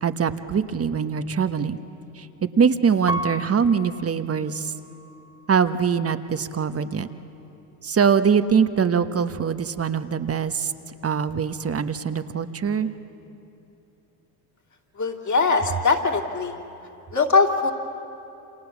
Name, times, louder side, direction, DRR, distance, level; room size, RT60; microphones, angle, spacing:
voice 1, 0.0-1.8 2.2-2.3 2.6-4.7 5.5-7.1 7.8-10.7 11.0-12.9, right 6 dB, 30° right, 10 dB, 1.2 m, -23 dB
Piano, 3.1-5.8 6.4-7.2, right 1 dB, 10° right, 1.0 m, -35 dB
voice 2, 15.0-16.5 17.1-17.7, left 4 dB, 35° left, 1 dB, 2.9 m, -21 dB
29.0 x 27.0 x 7.3 m, 2.9 s
hypercardioid pair, 75°, 49 cm